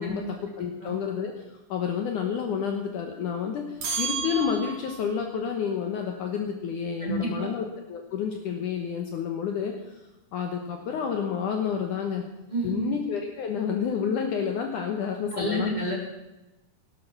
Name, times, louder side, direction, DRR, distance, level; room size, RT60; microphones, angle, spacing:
voice 1, 0.0-1.3 1.7-10.0 10.3-12.3 12.6-15.7, left 7 dB, 65° left, 3 dB, 2.5 m, -30 dB
sound 1, 3.8-5.2, right 5 dB, 45° right, 3.3 m, -32 dB
voice 2, 7.0-7.5 12.5-12.8 15.3-15.9, equal, 10° right, -2 dB, 4.0 m, -29 dB
17.5 x 12.0 x 6.0 m, 1.0 s
omnidirectional pair, 4.4 m